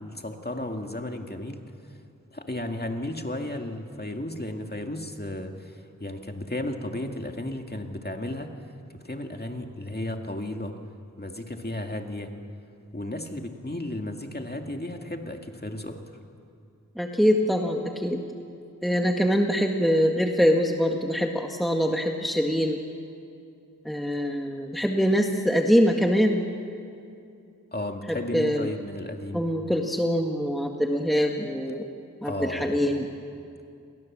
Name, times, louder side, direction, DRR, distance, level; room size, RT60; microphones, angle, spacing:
voice 1, 0.0-1.6 2.3-8.5 8.9-10.8 11.2-12.3 12.9-16.0 27.7-29.5 32.2-33.0, left 1 dB, 30° left, 4 dB, 2.2 m, -34 dB
voice 2, 17.0-18.2 18.8-22.8 23.9-26.4 28.1-28.7 29.3-31.8 32.2-33.1, equal, ahead, 2 dB, 1.8 m, -24 dB
29.0 x 22.5 x 7.5 m, 2.5 s
wide cardioid pair, 50°, 33 cm